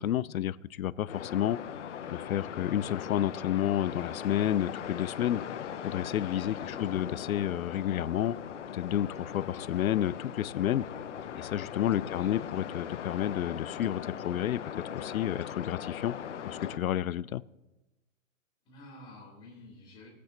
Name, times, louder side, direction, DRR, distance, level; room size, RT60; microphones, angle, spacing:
voice 1, 0.0-1.6 2.1-5.4 5.8-8.4 8.7-10.8 11.3-14.6 14.9-16.1 16.4-17.4, left 11 dB, 85° left, 19 dB, 0.6 m, -30 dB
sound 1, 1.1-16.8, left 8 dB, 60° left, 0.8 m, -40 dB
voice 2, 6.5-6.9 12.0-12.3 18.6-20.1, left 2 dB, 10° left, -4 dB, 2.9 m, -50 dB
20.5 x 8.3 x 3.0 m, 1.0 s
hypercardioid pair, 170°, 41 cm